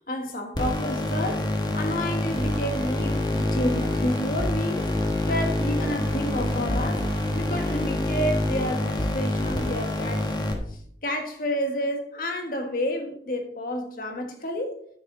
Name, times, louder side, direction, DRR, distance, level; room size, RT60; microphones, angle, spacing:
voice 1, 0.1-7.1 7.3-10.3 10.7-14.8, equal, 50° left, 1.7 m, -30 dB
sound 1, 0.5-10.5, left 1 dB, 25° left, 1.3 m, -26 dB
9.5 x 7.6 x 4.0 m
head